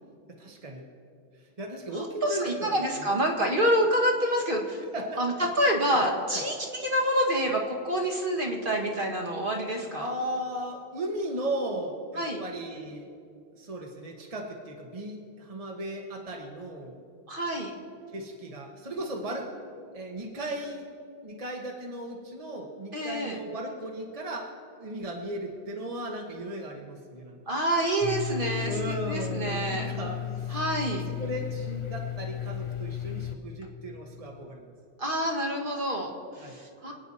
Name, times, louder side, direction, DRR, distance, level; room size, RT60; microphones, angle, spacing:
voice 1, 0.3-0.8 1.3-3.1 4.9-5.4 5.9-6.0 6.3-6.4 10.0-13.1 13.5-16.9 18.1-19.5 19.9-20.9 21.2-24.5 24.8-27.4 28.6-30.6 31.1-34.7 36.4-36.6, right 1 dB, 35° right, 0 dB, 1.3 m, -36 dB
voice 2, 1.9-4.8 5.2-6.6 6.8-10.1 12.2-12.4 17.3-17.7 22.9-23.4 27.5-28.8 29.1-29.9 30.5-31.1 35.0-36.9, right 1 dB, 55° right, 1 dB, 1.8 m, -27 dB
Domestic sounds home sounds, 28.0-33.4, left 9 dB, 35° left, 0.6 m, -34 dB
26.5 x 9.2 x 4.2 m, 2.4 s
omnidirectional pair, 1.1 m